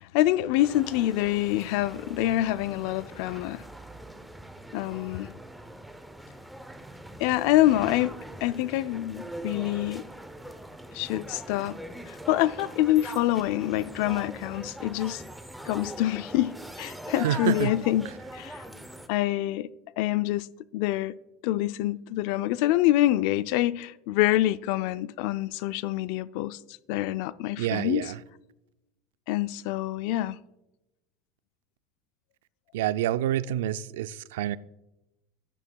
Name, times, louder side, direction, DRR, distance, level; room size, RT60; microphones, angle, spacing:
voice 1, 0.0-3.6 4.7-5.3 7.2-10.0 10.9-11.8 12.1-15.2 15.6-18.1 18.3-18.6 19.1-19.7 20.0-20.5 20.7-21.1 21.4-26.6 26.9-28.1 29.3-30.4, left 15 dB, 65° left, 0.3 m, -26 dB
sound 1, 0.6-19.1, right 1 dB, ahead, 0.6 m, -42 dB
voice 2, 17.2-17.7 27.6-28.1 32.7-34.6, right 12 dB, 90° right, 0.3 m, -27 dB
14.0 x 9.9 x 2.3 m
supercardioid pair, 140°, 0 cm